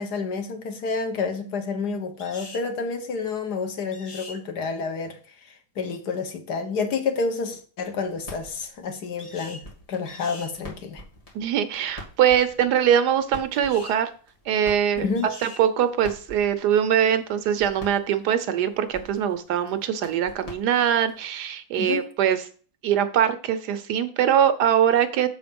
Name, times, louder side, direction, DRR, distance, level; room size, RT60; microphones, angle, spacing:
voice 1, 0.0-11.0 15.0-15.3 21.7-22.0, left 4 dB, 80° left, 1.7 m, -29 dB
sound 1, 2.2-2.7 3.9-4.4 9.2-9.7 10.1-10.5 13.5-14.0 15.1-15.7, left 3 dB, 40° left, 0.4 m, -43 dB
sound 2, 7.8-21.3, left 1 dB, 20° left, 2.3 m, -47 dB
voice 2, 11.3-14.1 14.5-15.0 15.4-22.4 22.8-25.3, right 9 dB, 85° right, 1.3 m, -22 dB
6.9 x 4.6 x 5.2 m
omnidirectional pair, 1.7 m